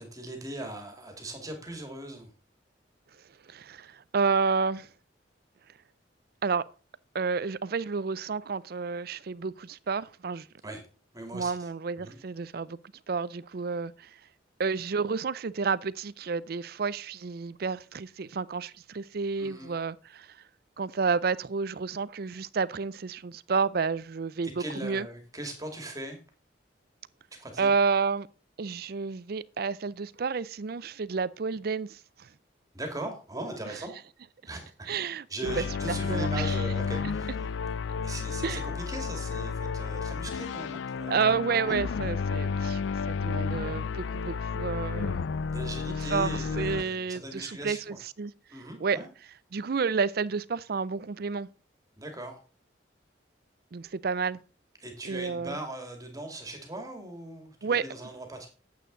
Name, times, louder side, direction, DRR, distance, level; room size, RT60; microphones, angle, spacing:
voice 1, 0.0-2.3 10.6-10.8 11.1-11.7 12.0-12.2 19.4-19.7 24.4-26.2 27.4-27.7 32.7-33.9 34.5-34.7 35.3-37.3 38.0-41.3 41.6-41.8 45.5-48.0 48.5-49.1 52.0-52.4 54.8-58.5, right 1 dB, 20° right, 2.1 m, -39 dB
voice 2, 3.5-4.9 6.4-6.7 7.1-10.5 11.3-12.8 13.1-14.1 14.6-20.4 20.8-25.1 27.6-28.3 28.6-32.3 34.9-35.3 35.5-35.6 36.1-36.6 38.4-38.6 41.1-45.2 46.1-48.3 48.8-49.0 49.5-51.5 53.7-54.4 55.0-55.6 57.6-57.9, right 5 dB, 55° right, 0.5 m, -30 dB
sound 1, 35.4-46.8, left 5 dB, 80° left, 0.4 m, -31 dB
9.2 x 8.3 x 3.9 m
head